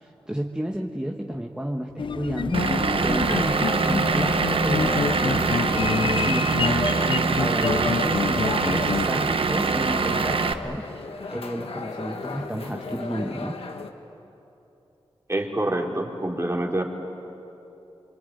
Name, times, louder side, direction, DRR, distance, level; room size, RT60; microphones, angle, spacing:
voice 1, 0.0-7.1 7.4-10.9 11.3-13.6, right 1 dB, 10° right, 1 dB, 1.5 m, -32 dB
sound 1, 2.0-9.1, left 6 dB, 60° left, 0.5 m, -28 dB
Vehicle / Engine, 2.5-10.5, right 4 dB, 65° right, 1.2 m, -24 dB
sound 2, 3.3-13.9, left 4 dB, 80° left, 1.8 m, -35 dB
voice 2, 15.3-16.8, right 1 dB, 25° right, 1 dB, 3.5 m, -26 dB
26.0 x 22.5 x 9.5 m, 2.9 s
cardioid pair, 60°, 10 cm